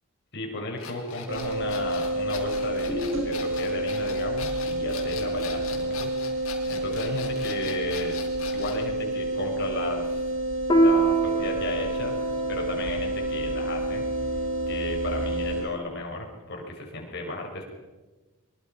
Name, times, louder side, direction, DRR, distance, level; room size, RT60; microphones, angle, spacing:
voice 1, 0.3-6.4 6.7-8.2 8.5-10.3 10.7-12.2 12.5-17.6, left 2 dB, 50° left, 1 dB, 5.8 m, -34 dB
sound 1, 0.8-8.8, left 6 dB, 70° left, 5.1 m, -40 dB
sound 2, 1.3-15.6, right 1 dB, 60° right, 6.9 m, -29 dB
Piano, 10.7-15.7, right 2 dB, 20° left, 2.4 m, -27 dB
24.0 x 23.5 x 5.9 m, 1.2 s
head